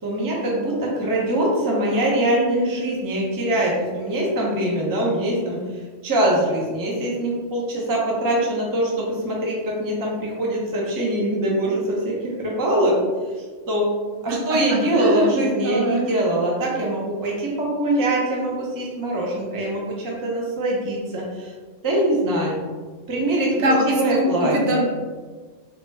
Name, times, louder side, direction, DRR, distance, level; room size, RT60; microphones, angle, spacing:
voice 1, 0.0-5.6 6.0-13.0 13.7-13.9 14.2-21.5 21.8-22.6 23.1-24.8, right 1 dB, 25° right, -3 dB, 0.5 m, -23 dB
voice 2, 14.3-16.1 23.6-24.8, right 1 dB, 70° right, 0 dB, 0.9 m, -23 dB
3.8 x 2.1 x 3.2 m, 1.4 s
omnidirectional pair, 1.3 m